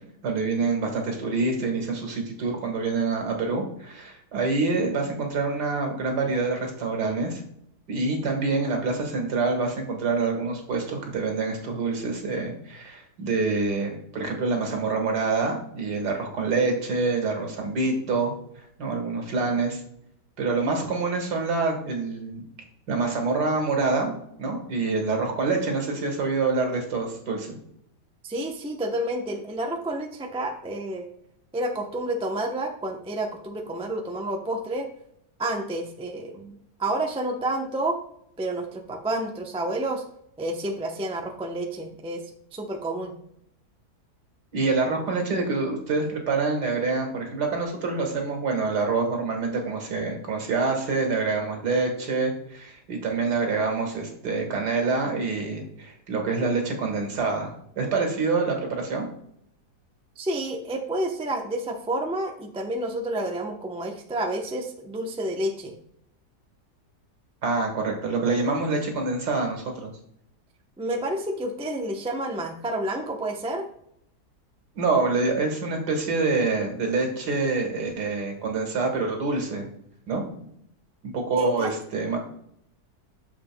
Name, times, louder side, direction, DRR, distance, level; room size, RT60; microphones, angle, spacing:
voice 1, 0.2-7.4 7.9-18.3 18.8-19.8 20.4-22.4 22.9-27.6 44.5-57.5 57.8-59.1 67.4-69.9 74.8-79.7 80.1-80.5 81.0-82.2, right 3 dB, 75° right, 2 dB, 2.1 m, -26 dB
voice 2, 28.2-31.0 31.5-34.9 35.4-38.0 38.4-40.0 40.4-42.2 42.5-43.1 60.2-65.7 70.8-73.6 81.3-81.7, right 1 dB, 10° right, 2 dB, 0.3 m, -29 dB
8.7 x 6.7 x 2.2 m, 0.71 s
omnidirectional pair, 1.8 m